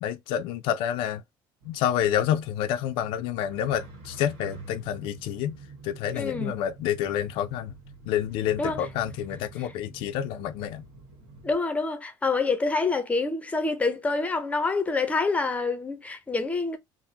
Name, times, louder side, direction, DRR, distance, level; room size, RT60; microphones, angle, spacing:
voice 1, 0.0-1.2 1.6-5.6 5.8-7.7 8.1-10.8, left 10 dB, 80° left, 0.4 m, -28 dB
sound 1, 1.6-11.5, right 3 dB, 65° right, 1.5 m, -47 dB
voice 2, 6.1-6.5 8.6-8.9 11.4-16.8, left 3 dB, 15° left, 0.6 m, -27 dB
3.5 x 2.1 x 2.7 m
cardioid pair, 130°, 9 cm